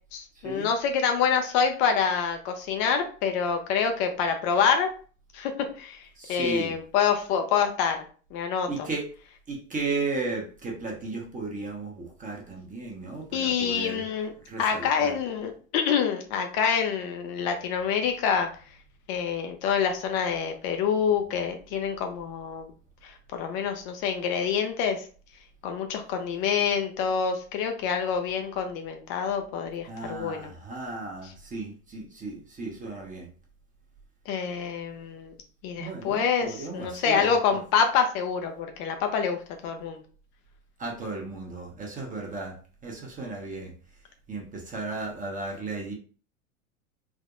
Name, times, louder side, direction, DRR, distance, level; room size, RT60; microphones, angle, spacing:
voice 1, 0.1-4.9 5.3-5.5 5.8-6.0 6.3-8.0 8.3-8.7 13.3-14.3 14.6-18.5 19.1-22.7 23.3-25.0 25.6-30.5 31.2-31.3 34.3-35.3 35.6-40.0, left 7 dB, 50° left, 5 dB, 0.6 m, -26 dB
voice 2, 6.2-6.7 8.7-9.1 9.5-14.0 14.5-15.1 29.9-33.3 35.8-37.4 40.8-42.5 42.8-43.7 44.3-45.9, right 3 dB, 20° right, 0 dB, 0.9 m, -34 dB
3.4 x 2.0 x 2.4 m, 0.40 s
hypercardioid pair, 90°, 40 cm